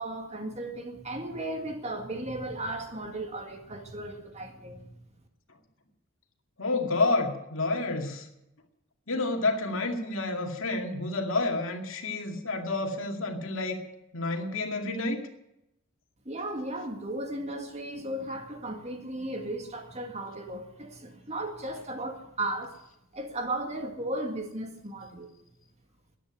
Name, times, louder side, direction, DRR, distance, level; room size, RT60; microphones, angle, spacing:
voice 1, 0.0-4.9 16.3-22.8 23.1-25.3, right 1 dB, 30° right, 5 dB, 2.0 m, -35 dB
voice 2, 6.6-8.3 9.1-13.8 14.1-15.2, left 2 dB, 65° left, 4 dB, 2.3 m, -29 dB
14.5 x 10.5 x 9.8 m, 0.84 s
head